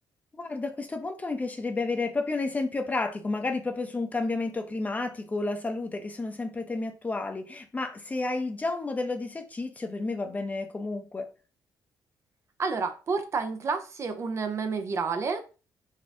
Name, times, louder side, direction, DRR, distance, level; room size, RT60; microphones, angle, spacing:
voice 1, 0.4-11.3, left 3 dB, 20° left, 0.7 m, -31 dB
voice 2, 12.6-15.4, right 4 dB, 40° right, 0.5 m, -30 dB
4.2 x 2.4 x 4.7 m
cardioid pair, 125°, 7 cm